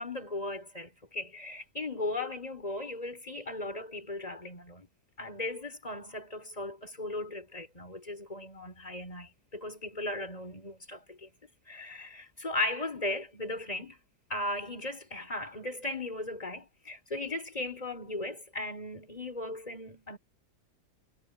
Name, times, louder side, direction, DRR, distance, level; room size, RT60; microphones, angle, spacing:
voice 1, 0.0-4.9 5.2-11.3 11.7-14.0 14.3-20.2, left 2 dB, 20° left, 4.9 m, -37 dB
omnidirectional pair, 1.7 m